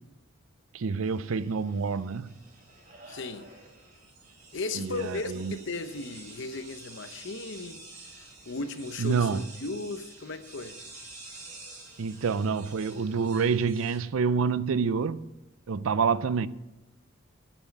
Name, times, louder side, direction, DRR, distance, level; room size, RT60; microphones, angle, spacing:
voice 1, 0.7-2.4 4.7-5.6 9.0-9.4 12.0-15.3 15.7-16.5, right 5 dB, 70° right, 0.5 m, -27 dB
sound 1, 1.0-14.0, right 3 dB, 40° right, 3.4 m, -49 dB
voice 2, 3.1-3.5 4.5-7.8 8.2-10.8, left 3 dB, 60° left, 0.9 m, -36 dB
9.2 x 7.4 x 8.1 m
head